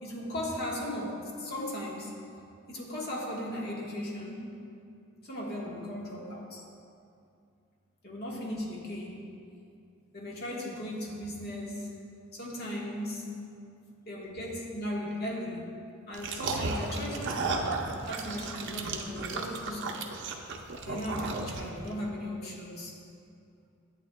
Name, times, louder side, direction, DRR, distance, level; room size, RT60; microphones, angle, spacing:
voice 1, 0.0-2.1 2.7-4.5 5.2-6.6 8.0-9.3 10.1-11.9 12.3-13.3 14.0-15.7 16.1-17.5 18.0-20.0 20.9-22.9, left 1 dB, 45° left, -3 dB, 1.3 m, -37 dB
sound 1, 16.1-21.9, right 3 dB, 55° right, 0.6 m, -34 dB
11.0 x 8.5 x 2.2 m, 2.5 s
head